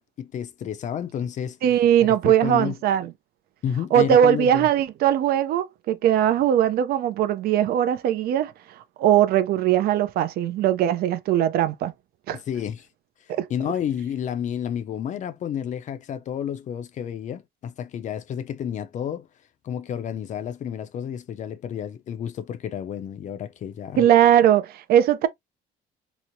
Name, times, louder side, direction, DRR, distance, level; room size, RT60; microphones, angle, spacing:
voice 1, 0.0-1.6 2.0-2.8 3.6-4.7 12.5-12.9 13.5-19.3 19.6-24.0, left 9 dB, 45° left, 0.5 m, -30 dB
voice 2, 1.6-3.1 3.9-8.5 9.0-11.9 12.3-12.4 13.3-13.5 24.0-25.3, right 10 dB, 65° right, 0.4 m, -20 dB
3.0 x 2.0 x 2.6 m
cardioid pair, 110°, 17 cm